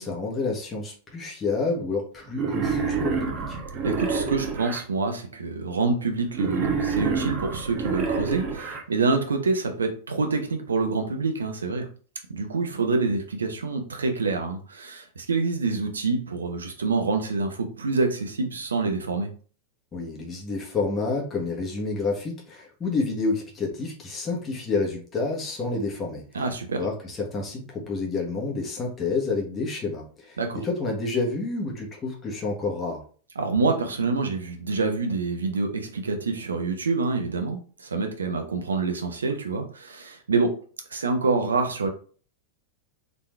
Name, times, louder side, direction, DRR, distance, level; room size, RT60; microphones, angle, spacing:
voice 1, 0.0-3.6 19.9-26.2 26.8-33.0, left 3 dB, 20° left, -2 dB, 1.5 m, -29 dB
Wild animals, 2.3-4.8 6.3-8.8, right 5 dB, 35° right, 1.1 m, -27 dB
voice 2, 3.8-11.9 12.3-19.3 26.3-26.8 30.4-30.6 33.4-40.6 40.9-41.9, right 3 dB, 70° right, 5 dB, 0.8 m, -26 dB
4.0 x 3.7 x 3.2 m, 0.41 s
figure-of-eight pair, 90°, 0 cm